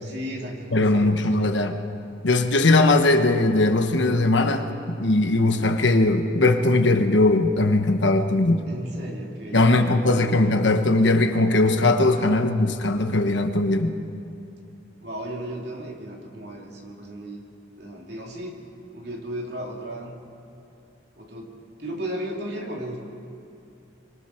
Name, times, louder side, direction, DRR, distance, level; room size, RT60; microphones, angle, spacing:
voice 1, 0.0-1.6 8.7-10.6 15.0-17.4 17.8-18.6 18.9-20.2 21.2-21.5 21.8-23.0, right 1 dB, 55° right, -1 dB, 3.0 m, -35 dB
voice 2, 0.7-1.7 2.2-4.7 5.0-8.6 9.5-14.0, left 2 dB, 65° left, 6 dB, 1.2 m, -19 dB
24.5 x 24.5 x 4.5 m, 2.7 s
head